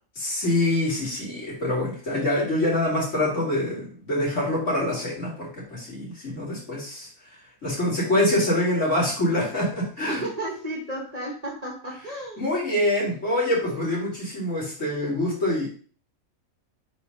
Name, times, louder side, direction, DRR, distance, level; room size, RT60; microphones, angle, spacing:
voice 1, 0.2-10.3 12.4-15.7, left 1 dB, 55° left, -5 dB, 2.9 m, -25 dB
voice 2, 10.1-12.4, right 1 dB, 25° right, -2 dB, 1.4 m, -33 dB
4.2 x 4.2 x 5.4 m, 0.42 s
omnidirectional pair, 1.5 m